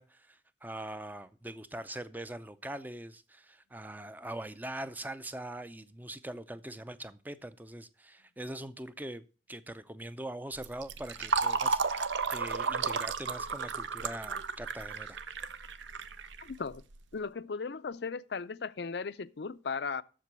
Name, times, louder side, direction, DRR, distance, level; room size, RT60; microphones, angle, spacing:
voice 1, 0.0-15.2, right 1 dB, 10° right, 0.5 m, -42 dB
Fill (with liquid), 10.6-17.0, right 5 dB, 75° right, 0.7 m, -33 dB
voice 2, 16.4-16.8 17.1-20.0, left 5 dB, 60° left, 0.5 m, -37 dB
7.5 x 6.9 x 8.1 m
head